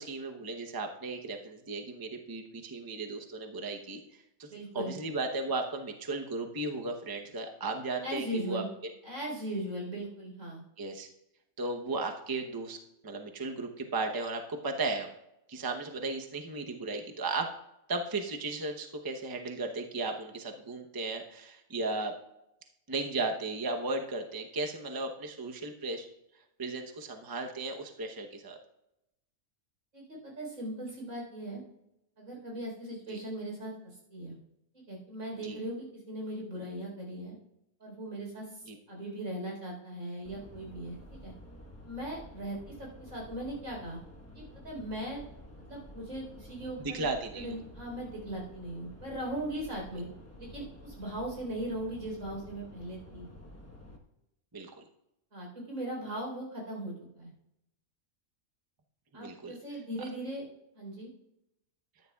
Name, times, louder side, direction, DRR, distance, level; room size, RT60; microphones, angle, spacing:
voice 1, 0.0-4.5 4.7-8.9 10.8-11.1 11.6-12.8 13.0-15.1 15.5-17.5 17.9-22.2 22.9-26.1 26.6-28.6 33.1-33.2 35.4-35.6 38.6-38.8 46.8-47.5 54.5-54.7 59.1-59.6, right 3 dB, 20° right, 4 dB, 0.7 m, -35 dB
voice 2, 4.5-4.9 8.0-8.7 9.0-10.6 29.9-31.6 32.2-34.3 34.7-37.4 37.8-41.3 41.8-44.0 44.3-45.2 45.7-47.1 47.3-50.1 50.4-53.3 55.3-57.3 59.1-60.4 60.7-61.1, right 1 dB, 80° right, -2 dB, 4.5 m, -39 dB
sound 1, 40.2-54.0, left 1 dB, 10° left, 1.0 m, -50 dB
13.5 x 10.0 x 2.3 m, 0.85 s
omnidirectional pair, 1.4 m